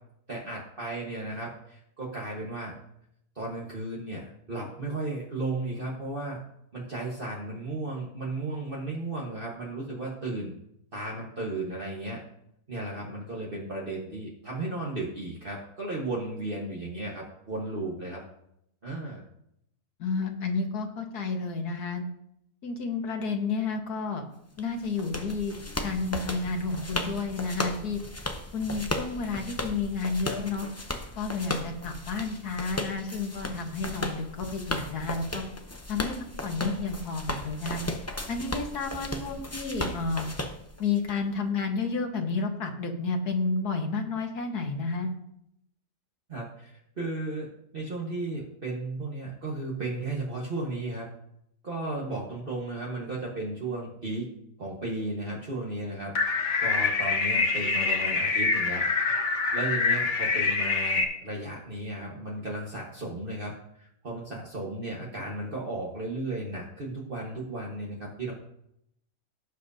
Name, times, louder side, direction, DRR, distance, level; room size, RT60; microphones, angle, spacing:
voice 1, 0.3-2.7 3.3-6.4 6.7-10.5 10.9-12.2 12.7-18.2 18.8-19.2 46.3-47.5 47.7-51.1 51.6-54.3 54.6-56.1 56.6-58.9 59.5-68.3, right 2 dB, 35° right, -4 dB, 1.6 m, -34 dB
voice 2, 20.0-22.1 22.6-24.2 24.6-28.0 28.5-30.7 31.2-35.4 35.9-36.1 36.4-37.8 38.3-40.3 40.8-45.1, left 4 dB, 75° left, 4 dB, 1.8 m, -31 dB
sound 1, 24.6-41.1, left 1 dB, 20° left, 0.4 m, -36 dB
sound 2, 56.1-61.0, left 4 dB, 50° left, 1.6 m, -25 dB
17.5 x 7.3 x 2.8 m, 0.77 s
omnidirectional pair, 1.7 m